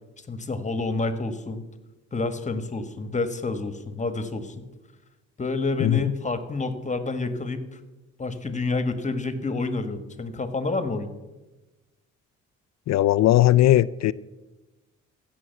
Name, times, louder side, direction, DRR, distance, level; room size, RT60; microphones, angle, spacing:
voice 1, 0.3-1.6 2.1-4.6 5.4-7.8 8.2-11.1, left 3 dB, 25° left, 10 dB, 1.5 m, -29 dB
voice 2, 5.8-6.1 12.9-14.1, left 14 dB, 60° left, 15 dB, 0.4 m, -18 dB
15.5 x 6.3 x 8.1 m, 1.1 s
cardioid pair, 90°, 30 cm